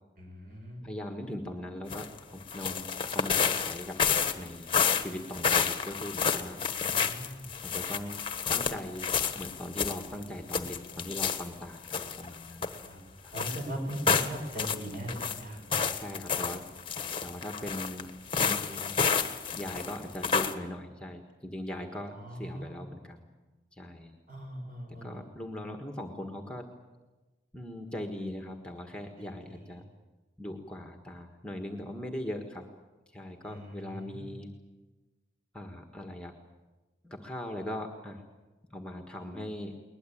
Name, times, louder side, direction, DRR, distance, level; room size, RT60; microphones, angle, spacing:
voice 1, 0.2-0.9 6.6-7.5 12.8-13.0 13.3-15.6 21.7-22.8 24.3-25.3 29.2-29.6 33.4-34.3, equal, 50° right, 2 dB, 6.5 m, -40 dB
voice 2, 0.8-2.9 3.1-4.0 4.3-6.6 7.6-8.2 8.5-12.7 13.2-13.3 16.0-16.7 17.2-18.1 18.4-19.0 19.5-23.2 23.7-24.2 25.0-26.7 27.5-29.8 30.4-32.7 33.1-34.5 35.5-36.3 37.0-38.2 38.7-39.8, left 1 dB, 5° left, 4 dB, 1.6 m, -40 dB
sound 1, 1.9-2.2 2.5-11.5 11.9-12.9 13.3-15.4 15.7-20.5, left 6 dB, 30° left, 1.3 m, -30 dB
21.5 x 20.5 x 8.7 m, 1.2 s
head